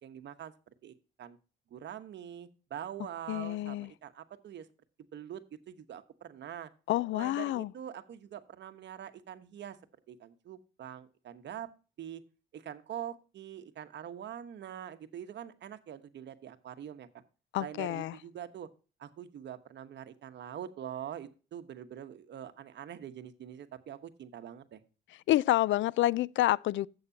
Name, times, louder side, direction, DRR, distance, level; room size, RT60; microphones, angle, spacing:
voice 1, 0.0-0.5 0.8-1.4 1.7-4.7 5.1-6.7 7.1-9.8 10.1-11.7 12.0-12.2 12.5-17.1 17.6-18.7 19.0-24.8, right 10 dB, 65° right, 1.2 m, -44 dB
voice 2, 3.3-3.9 6.9-7.7 17.5-18.1 25.3-26.9, left 15 dB, 75° left, 0.4 m, -28 dB
12.0 x 8.1 x 2.8 m
cardioid pair, 90°, 20 cm